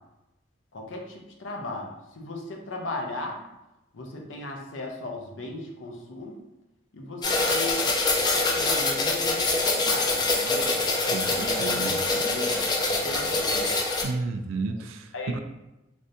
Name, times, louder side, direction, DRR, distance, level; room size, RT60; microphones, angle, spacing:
voice 1, 0.7-3.4 3.9-6.4 6.9-7.9 8.2-10.7 11.3-13.8 15.1-15.4, left 2 dB, 80° left, 1 dB, 0.6 m, -37 dB
sound 1, 7.2-14.0, left 2 dB, 20° left, 0.3 m, -25 dB
voice 2, 11.1-12.0 14.0-15.4, right 3 dB, 90° right, 8 dB, 0.3 m, -32 dB
3.2 x 2.6 x 2.6 m, 0.95 s
head